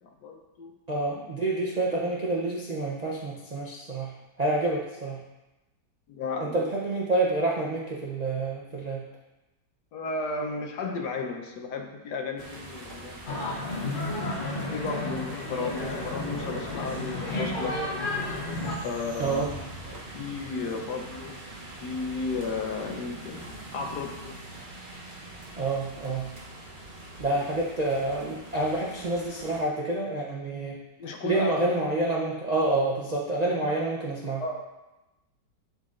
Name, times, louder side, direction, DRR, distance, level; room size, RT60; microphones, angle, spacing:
voice 1, 0.0-0.7 6.1-6.6 9.9-13.4 14.7-17.7 18.8-19.5 19.9-24.3 27.3-27.5 31.0-31.6 33.6-33.7 34.4-34.7, left 4 dB, 70° left, 3 dB, 1.3 m, -34 dB
voice 2, 0.9-4.1 4.4-5.2 6.4-9.0 19.2-19.5 25.6-26.2 27.2-30.8 31.2-34.4, right 2 dB, 65° right, -4 dB, 0.4 m, -28 dB
sound 1, 12.4-29.6, right 2 dB, 40° right, 0.8 m, -43 dB
sound 2, 13.3-18.8, left 2 dB, 40° left, 0.8 m, -32 dB
11.5 x 4.0 x 2.5 m, 1.0 s
omnidirectional pair, 1.9 m